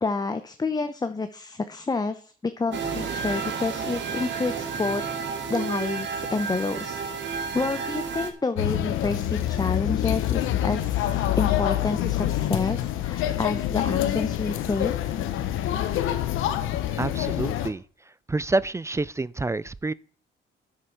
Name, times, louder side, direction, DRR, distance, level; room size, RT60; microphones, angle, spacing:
voice 1, 0.0-5.0 5.5-7.0 7.5-14.9, left 3 dB, 20° left, 0.8 m, -29 dB
sound 1, 2.7-8.3, right 5 dB, 65° right, 1.8 m, -31 dB
sound 2, 8.6-17.7, left 12 dB, 90° left, 1.0 m, -26 dB
voice 2, 17.0-17.8 18.3-19.9, right 2 dB, 15° right, 0.4 m, -27 dB
8.8 x 7.1 x 6.5 m
cardioid pair, 90°, 20 cm